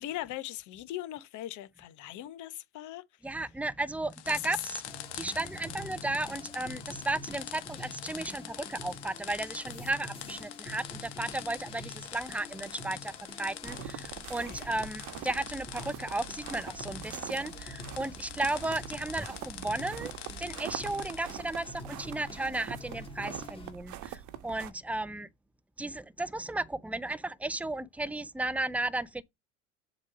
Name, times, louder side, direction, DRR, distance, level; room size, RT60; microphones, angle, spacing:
voice 1, 0.0-3.0 4.3-4.4 14.5-14.6, left 14 dB, 55° left, 1.0 m, -40 dB
voice 2, 3.2-4.8 5.1-20.1 20.4-25.3 25.8-29.2, right 2 dB, 5° right, 0.5 m, -34 dB
sound 1, 4.1-21.9, left 12 dB, 75° left, 1.2 m, -45 dB
sound 2, 4.8-23.7, left 2 dB, 15° left, 2.1 m, -47 dB
sound 3, 13.6-24.7, right 11 dB, 55° right, 1.1 m, -44 dB
7.4 x 3.1 x 4.9 m
hypercardioid pair, 75°, 36 cm